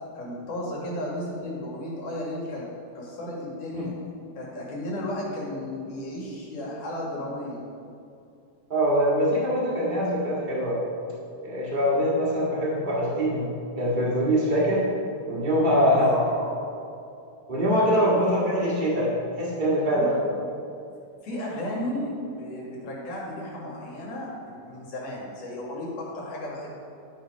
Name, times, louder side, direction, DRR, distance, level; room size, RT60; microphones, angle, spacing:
voice 1, 0.1-2.6 2.9-3.9 4.4-7.6 15.9-16.3 18.1-18.2 19.8-20.1 21.2-24.3 24.6-26.7, left 1 dB, 70° left, -4 dB, 3.3 m, -34 dB
voice 2, 8.7-10.8 11.4-13.4 13.8-14.8 15.3-16.5 17.5-20.1, equal, 40° right, -6 dB, 0.6 m, -23 dB
12.0 x 4.3 x 5.1 m, 2.6 s
omnidirectional pair, 3.9 m